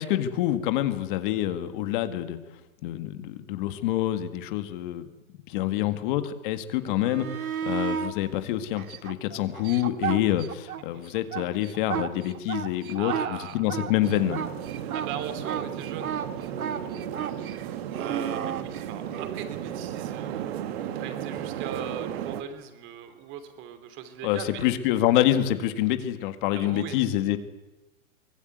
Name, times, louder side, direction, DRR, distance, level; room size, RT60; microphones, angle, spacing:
voice 1, 0.0-2.4 2.8-5.1 5.5-14.4 24.2-27.4, left 13 dB, 35° left, 9 dB, 1.9 m, -27 dB
sound 1, 6.9-8.1 8.8-10.8 11.1-19.4 22.1-22.2, right 9 dB, 90° right, 2.1 m, -33 dB
voice 2, 12.9-13.7 14.9-16.8 17.1-20.5 20.8-24.7 26.5-27.0, right 8 dB, 30° right, 9 dB, 3.1 m, -39 dB
sound 2, 14.0-22.4, right 10 dB, 45° right, 1.9 m, -34 dB
24.0 x 20.0 x 9.4 m, 1.1 s
hypercardioid pair, 160°, 42 cm